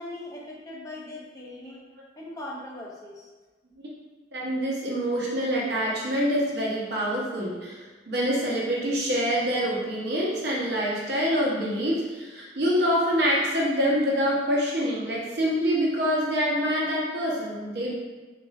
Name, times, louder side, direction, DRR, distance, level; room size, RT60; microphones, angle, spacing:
voice 1, 0.0-1.8 2.2-3.3, left 1 dB, 20° left, -2 dB, 0.5 m, -40 dB
voice 2, 4.3-17.9, equal, 65° right, -5 dB, 0.9 m, -26 dB
3.6 x 2.5 x 3.1 m, 1.3 s
head